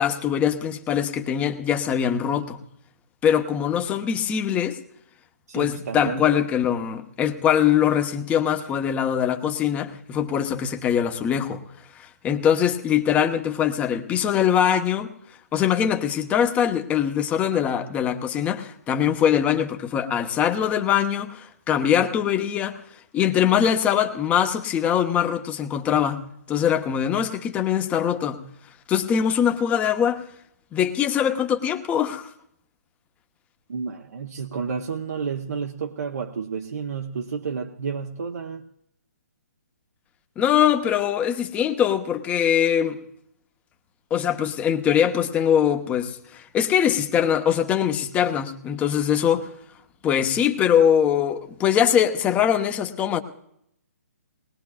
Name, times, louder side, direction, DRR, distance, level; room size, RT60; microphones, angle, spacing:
voice 1, 0.0-2.6 3.2-4.8 5.5-11.6 12.0-15.1 15.5-22.8 23.1-26.2 26.5-28.4 28.9-30.2 30.7-32.3 40.4-43.0 44.1-49.5 50.0-53.2, left 9 dB, 15° left, 7 dB, 0.9 m, -22 dB
voice 2, 5.5-6.5 33.7-38.6, right 5 dB, 70° right, 2 dB, 1.0 m, -31 dB
20.5 x 19.5 x 2.4 m, 0.74 s
hypercardioid pair, 140°, 9 cm